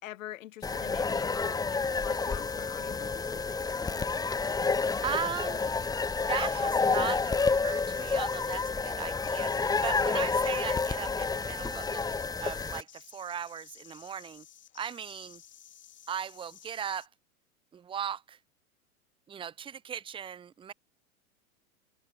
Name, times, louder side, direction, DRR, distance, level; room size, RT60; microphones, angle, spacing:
voice 1, 0.0-3.6, left 13 dB, 65° left, 3.3 m, -45 dB
sound 1, 0.6-12.8, left 4 dB, 10° left, 1.1 m, -29 dB
sound 2, 1.8-17.1, left 10 dB, 25° left, 6.3 m, -56 dB
voice 2, 5.0-5.7 6.3-9.6 9.8-12.1 12.4-14.5 14.7-15.4 16.1-17.1 17.7-18.4 19.3-20.7, right 8 dB, 10° right, 0.7 m, -37 dB
hypercardioid pair, 105°, 43 cm